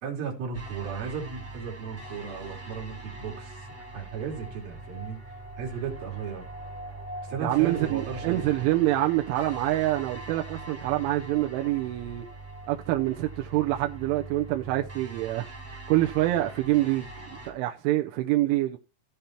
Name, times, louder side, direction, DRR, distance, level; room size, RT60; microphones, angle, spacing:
voice 1, 0.0-3.7 3.9-5.2 5.6-6.4 7.3-8.5, right 6 dB, 55° right, 4.1 m, -35 dB
sound 1, 0.5-17.5, right 2 dB, 5° right, 1.3 m, -42 dB
voice 2, 7.4-12.3 12.7-15.5 15.9-18.8, right 15 dB, 85° right, 3.2 m, -26 dB
16.0 x 5.3 x 4.4 m
omnidirectional pair, 5.5 m